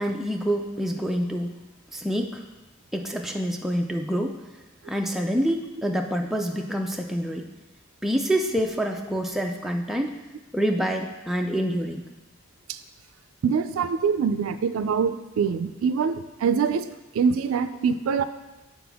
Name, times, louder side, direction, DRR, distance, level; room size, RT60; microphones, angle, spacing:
voice 1, 0.0-1.6 1.9-2.4 2.9-4.4 4.9-7.5 8.0-10.2 10.5-12.1, equal, ahead, 2 dB, 0.3 m, -27 dB
voice 2, 13.4-16.9 17.1-18.2, right 6 dB, 80° right, 11 dB, 0.3 m, -24 dB
7.8 x 4.1 x 3.5 m, 1.1 s
head